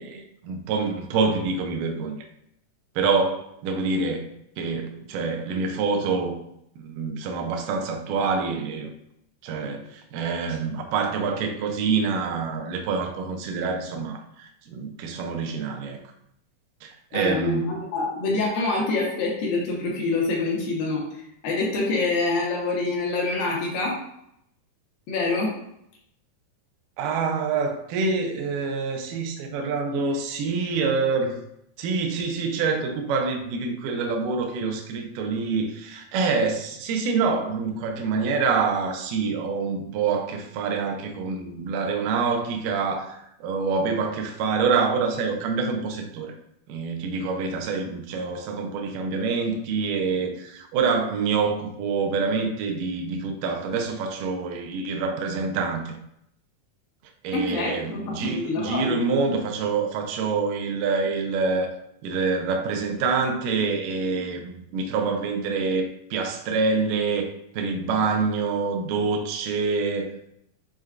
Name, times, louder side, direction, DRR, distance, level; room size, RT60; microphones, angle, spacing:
voice 1, 0.0-2.3 3.0-6.4 6.8-8.9 9.4-16.0 16.8-17.7 27.0-31.4 31.8-46.3 46.7-56.0 57.2-61.8 62.0-67.3 67.6-70.3, right 4 dB, 85° right, 3 dB, 1.9 m, -26 dB
voice 2, 17.1-21.0 21.4-24.0 25.1-25.6 57.3-59.0, left 3 dB, 75° left, -2 dB, 2.4 m, -26 dB
6.5 x 2.2 x 2.4 m, 0.75 s
omnidirectional pair, 4.4 m